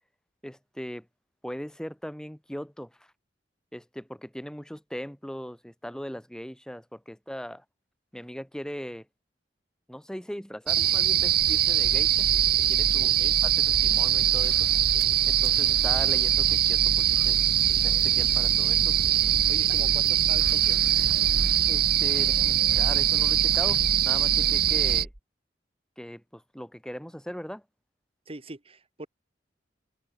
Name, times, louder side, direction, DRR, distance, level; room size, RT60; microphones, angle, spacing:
voice 1, 0.4-1.0 1.4-2.9 3.7-7.6 8.1-9.0 9.9-12.3 12.7-13.1 13.4-14.7 15.3-17.4 17.8-19.0 21.7-25.1 26.0-27.6, equal, 5° left, 1.3 m, -39 dB
sound 1, 10.7-25.0, right 11 dB, 55° right, 0.9 m, -22 dB
sound 2, 11.8-25.2, equal, 15° right, 1.2 m, -36 dB
voice 2, 13.0-13.4 19.5-20.8 28.3-29.1, right 2 dB, 30° right, 1.5 m, -42 dB
head